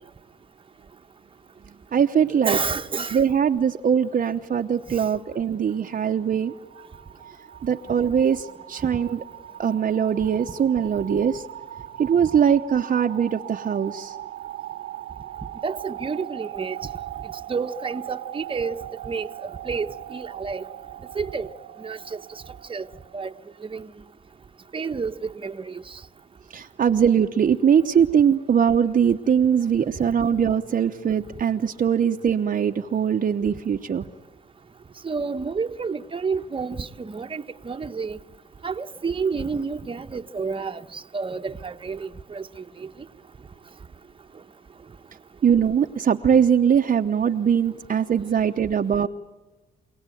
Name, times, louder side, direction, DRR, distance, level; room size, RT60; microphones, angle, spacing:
voice 1, 1.7-2.6 3.1-6.5 7.6-9.2 9.6-11.5 12.0-14.2 26.5-34.0 45.4-49.1, right 8 dB, 45° right, 0.9 m, -21 dB
voice 2, 2.3-3.2 15.6-16.8 17.5-19.3 19.6-20.6 21.1-21.5 21.8-22.2 22.7-22.9 23.1-23.3 23.6-23.9 24.7-26.0 35.0-38.2 38.6-42.5 42.8-42.9, right 5 dB, 25° right, 1.1 m, -30 dB
sound 1, 5.6-23.4, right 13 dB, 75° right, 0.8 m, -40 dB
30.0 x 18.0 x 9.2 m
cardioid pair, 90°, 20 cm